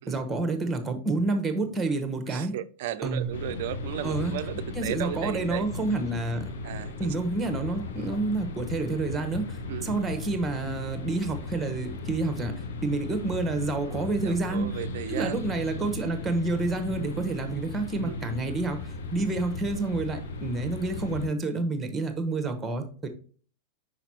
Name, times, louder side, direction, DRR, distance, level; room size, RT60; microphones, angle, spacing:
voice 1, 0.1-2.6 3.0-3.3 4.0-4.3 4.7-6.5 7.0-12.5 12.8-14.8 15.1-23.1, right 3 dB, 15° right, 1.2 m, -29 dB
voice 2, 2.3-5.7 6.6-7.1 8.0-8.1 9.7-9.9 13.8-15.4 18.0-18.3, right 12 dB, 55° right, 0.4 m, -35 dB
sound 1, 3.0-21.3, right 1 dB, 20° left, 1.6 m, -49 dB
sound 2, 3.3-21.3, left 3 dB, 65° left, 0.8 m, -37 dB
5.8 x 5.0 x 4.2 m
figure-of-eight pair, 90°, 0 cm